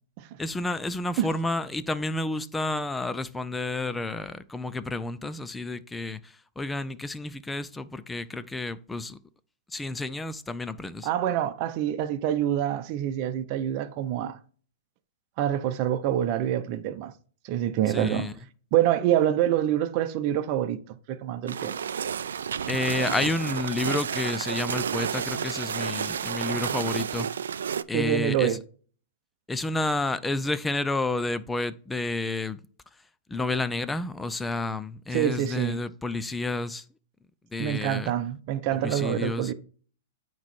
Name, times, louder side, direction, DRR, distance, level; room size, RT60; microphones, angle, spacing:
voice 1, 0.4-9.2 9.7-11.1 17.9-18.3 22.7-27.3 27.9-28.6 29.5-32.6 33.3-36.8 37.5-38.1 38.7-39.5, left 2 dB, 10° left, 0.4 m, -30 dB
voice 2, 11.0-14.4 15.4-17.1 17.4-18.3 18.7-21.8 27.9-28.6 35.1-35.8 37.6-39.5, right 11 dB, 40° right, 0.8 m, -26 dB
sound 1, 21.5-27.8, right 7 dB, 85° right, 0.4 m, -31 dB
9.1 x 3.2 x 4.4 m
hypercardioid pair, 135°, 0 cm